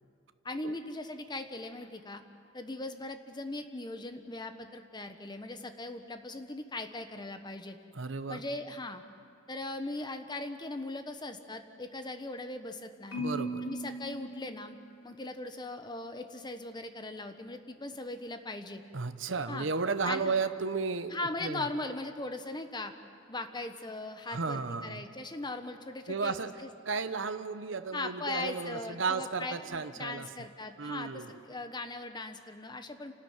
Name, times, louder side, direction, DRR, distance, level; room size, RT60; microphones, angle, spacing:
voice 1, 0.4-2.2 2.5-7.8 8.3-9.0 9.5-13.2 13.6-14.8 15.0-18.8 19.5-19.7 20.0-20.4 21.1-22.9 23.3-26.3 26.6-26.7 27.9-33.1, left 2 dB, 20° left, 7 dB, 1.2 m, -39 dB
voice 2, 7.9-8.4 13.2-13.7 18.9-21.1 21.4-21.6 24.3-25.0 26.1-26.5 26.9-30.3 30.8-31.3, right 4 dB, 70° right, 10 dB, 0.9 m, -33 dB
Marimba xylophone, 13.1-15.3, right 1 dB, 75° left, 3.7 m, -38 dB
28.0 x 13.0 x 9.3 m, 2.6 s
head